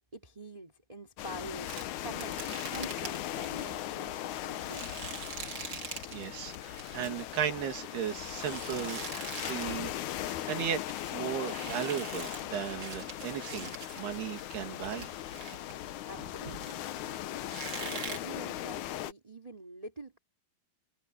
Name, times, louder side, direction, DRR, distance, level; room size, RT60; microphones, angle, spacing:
voice 1, 0.1-2.3 2.7-4.2 4.5-5.1 16.0-17.4 17.8-20.2, right 1 dB, 10° right, 2.9 m, -46 dB
sound 1, 1.2-19.1, left 13 dB, 85° left, 1.7 m, -39 dB
sound 2, 1.7-6.3 6.5-9.8 10.1-17.0 17.5-18.2, right 5 dB, 35° right, 2.0 m, -44 dB
voice 2, 6.1-9.0 9.3-10.8 11.1-15.1, right 9 dB, 75° right, 4.2 m, -36 dB
omnidirectional pair, 4.7 m